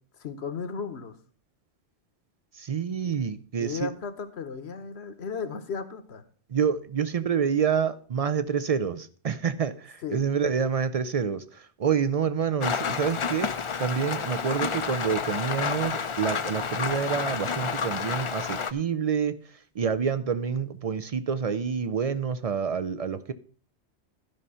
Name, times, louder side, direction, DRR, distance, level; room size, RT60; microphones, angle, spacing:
voice 1, 0.2-1.1 3.6-6.2 10.0-10.3, left 5 dB, 70° left, 1.2 m, -35 dB
voice 2, 2.6-3.9 6.5-11.4 11.8-13.5 13.8-19.3 19.8-23.3, right 7 dB, 55° right, 0.4 m, -27 dB
Rain, 12.6-18.7, left 6 dB, 40° left, 0.4 m, -30 dB
12.0 x 5.5 x 5.5 m
omnidirectional pair, 1.2 m